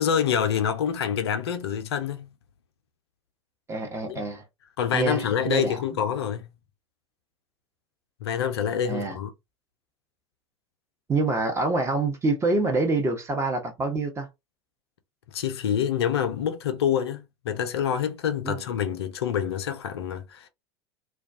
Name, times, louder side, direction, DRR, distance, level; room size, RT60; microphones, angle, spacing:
voice 1, 0.0-2.3 4.1-4.2 4.8-6.5 8.2-9.3 15.3-20.5, left 8 dB, 65° left, 0.5 m, -26 dB
voice 2, 3.7-4.4 4.9-5.8 8.8-9.2 11.1-14.3 18.4-18.6, right 3 dB, 20° right, 0.8 m, -26 dB
2.2 x 2.2 x 2.6 m
figure-of-eight pair, 75°, 14 cm